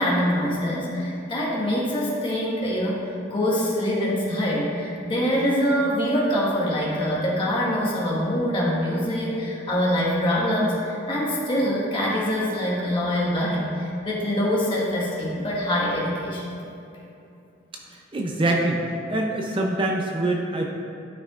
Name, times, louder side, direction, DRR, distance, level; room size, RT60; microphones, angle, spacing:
voice 1, 0.0-3.0 3.3-16.4, equal, 30° left, -5 dB, 1.5 m, -24 dB
voice 2, 17.9-18.8 19.1-20.7, right 2 dB, 30° right, 0 dB, 0.5 m, -24 dB
13.0 x 5.7 x 2.4 m, 2.7 s
head